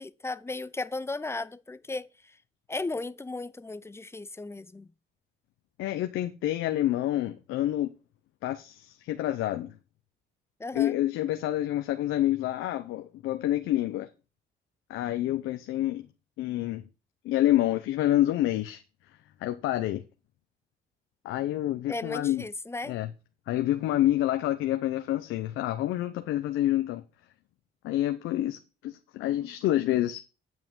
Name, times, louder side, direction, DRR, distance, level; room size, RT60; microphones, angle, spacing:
voice 1, 0.0-2.4 2.7-4.9 10.6-11.0 21.9-23.0, left 3 dB, 15° left, 0.6 m, -35 dB
voice 2, 5.8-8.0 8.4-9.8 10.7-14.1 14.9-16.1 16.4-16.8 17.2-18.8 19.4-20.0 21.2-22.4 22.9-23.1 23.5-27.0 27.8-30.2, left 14 dB, 90° left, 0.7 m, -28 dB
9.2 x 5.5 x 6.1 m
cardioid pair, 90°, 20 cm